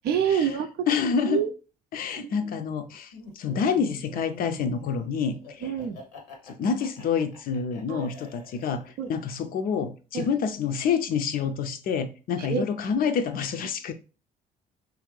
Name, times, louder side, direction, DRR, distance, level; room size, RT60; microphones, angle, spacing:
voice 1, 0.0-0.9 1.3-1.5 2.2-2.3 5.6-6.0 7.9-8.1 9.0-9.1 10.1-10.3 12.4-12.7, right 8 dB, 55° right, 0.5 m, -27 dB
voice 2, 0.9-1.4 1.9-5.7 6.4-13.9, left 6 dB, 45° left, 0.5 m, -28 dB
Laughter, 3.1-9.1, left 3 dB, 80° left, 0.8 m, -45 dB
3.1 x 2.5 x 3.1 m
figure-of-eight pair, 45°, 20 cm